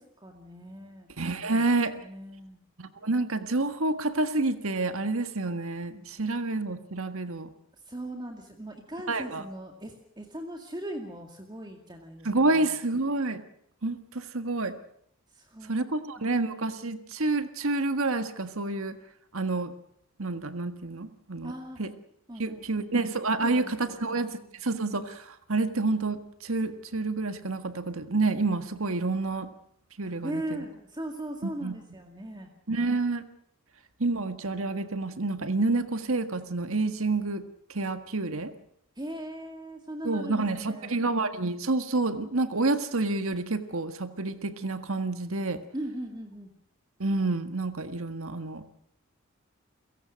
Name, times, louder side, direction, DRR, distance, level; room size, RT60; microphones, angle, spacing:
voice 1, 0.0-1.1 2.0-2.6 6.1-6.4 7.7-12.7 15.3-15.8 16.2-16.4 21.4-21.8 22.3-22.9 23.4-24.3 30.0-32.5 39.0-41.0 45.7-46.5, right 1 dB, 20° right, 3 dB, 2.2 m, -39 dB
voice 2, 1.2-2.0 2.8-7.5 9.1-9.4 12.2-13.4 13.8-14.7 15.7-19.0 19.3-19.7 20.2-21.5 21.8-21.9 22.4-24.3 24.6-29.5 30.0-30.4 31.4-31.7 32.7-33.2 34.0-37.4 37.7-38.5 40.0-45.6 47.0-48.6, right 3 dB, 70° right, 9 dB, 1.7 m, -28 dB
30.0 x 17.0 x 6.4 m, 0.71 s
head